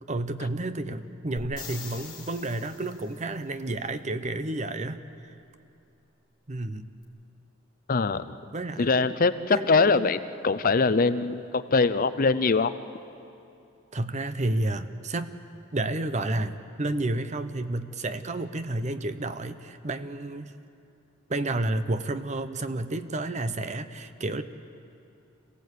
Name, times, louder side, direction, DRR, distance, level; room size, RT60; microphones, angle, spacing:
voice 1, 0.1-5.3 6.5-6.9 8.5-8.9 9.5-10.2 13.9-15.3 15.7-20.5 21.3-24.4, right 2 dB, 35° right, 11 dB, 0.8 m, -31 dB
sound 1, 1.4-3.2 7.0-7.1, left 5 dB, 20° left, 3.3 m, -43 dB
voice 2, 7.9-8.4 8.8-10.2 10.4-12.7, left 4 dB, 45° left, 13 dB, 0.6 m, -22 dB
26.5 x 16.5 x 8.3 m, 2.7 s
head